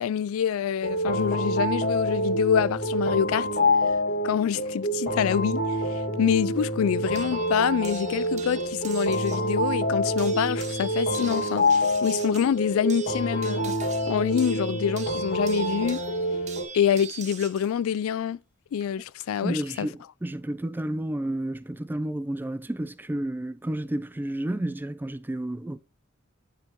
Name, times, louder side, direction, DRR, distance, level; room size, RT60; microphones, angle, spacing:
voice 1, 0.0-3.5 4.2-13.8 14.1-16.0 16.7-18.4 18.7-19.9, left 8 dB, 85° left, 0.3 m, -26 dB
sound 1, 0.8-16.6, equal, 55° left, 1.8 m, -27 dB
sound 2, 7.2-9.5 10.2-17.7 18.8-19.2, right 7 dB, 35° right, 0.9 m, -43 dB
voice 2, 19.4-25.8, right 1 dB, 10° right, 0.3 m, -31 dB
9.8 x 5.6 x 2.9 m
head